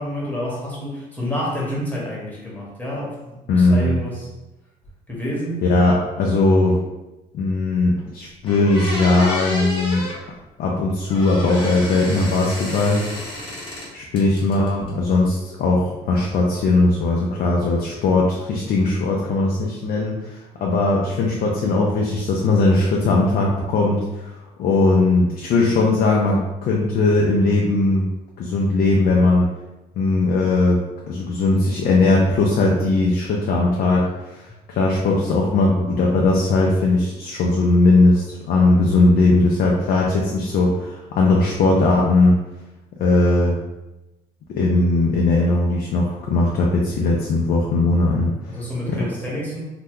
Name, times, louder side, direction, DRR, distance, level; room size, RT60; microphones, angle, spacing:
voice 1, 0.0-4.3 5.1-5.6 48.5-49.6, equal, 10° left, -6 dB, 1.1 m, -28 dB
voice 2, 3.5-4.0 5.6-6.8 7.3-10.0 10.6-13.1 13.9-28.1 28.4-29.5 30.0-30.8 31.1-34.0 34.3-42.3 43.0-43.6 44.6-48.3 48.9-49.1, left 2 dB, 60° left, -2 dB, 0.5 m, -19 dB
sound 1, 8.0-8.1 8.4-10.2 11.1-13.9 14.2-14.9, equal, 30° left, 1.1 m, -31 dB
2.8 x 2.2 x 3.5 m, 1.0 s
cardioid pair, 110°, 17 cm